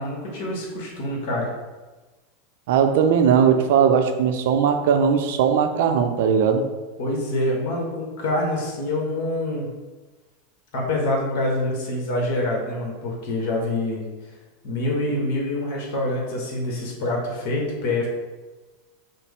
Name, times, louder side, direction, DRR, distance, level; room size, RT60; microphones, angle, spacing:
voice 1, 0.0-1.5 7.0-9.7 10.7-14.0 14.6-18.1, left 1 dB, 60° left, -1 dB, 1.1 m, -26 dB
voice 2, 2.7-6.6, right 7 dB, 65° right, 6 dB, 0.5 m, -19 dB
5.9 x 2.0 x 3.5 m, 1.2 s
hypercardioid pair, 90°, 0 cm